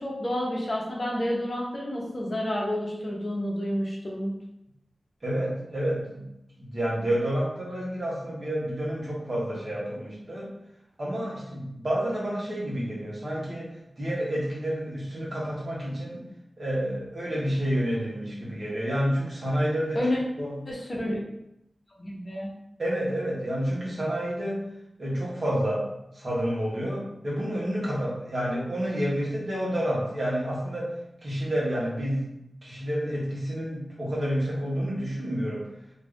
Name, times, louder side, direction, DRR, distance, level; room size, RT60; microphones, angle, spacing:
voice 1, 0.0-4.3 19.9-20.2 20.7-21.2 22.0-22.5, left 1 dB, 45° left, -3 dB, 0.7 m, -29 dB
voice 2, 5.2-6.3 6.6-10.5 11.0-16.2 16.6-20.0 20.4-20.5 22.8-24.6 25.0-25.8 26.1-30.9 31.2-32.3 32.6-35.6, equal, 50° right, -5 dB, 1.0 m, -29 dB
2.5 x 2.4 x 3.4 m, 0.83 s
wide cardioid pair, 95°, 0 cm